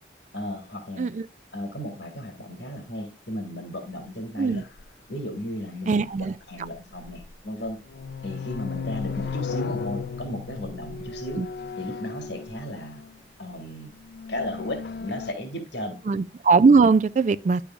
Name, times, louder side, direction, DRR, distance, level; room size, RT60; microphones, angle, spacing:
voice 1, 0.3-1.1 1.5-4.6 5.1-7.8 8.2-11.4 11.8-13.0 13.4-13.9 14.3-16.0, left 1 dB, 80° left, 2.0 m, -35 dB
sound 1, 4.8-4.9 6.6-7.3 7.7-13.2 14.0-15.3, left 5 dB, 60° left, 0.4 m, -35 dB
voice 2, 5.9-6.3 11.4-11.5 16.1-17.6, right 4 dB, 40° right, 0.3 m, -19 dB
9.9 x 6.9 x 2.4 m
head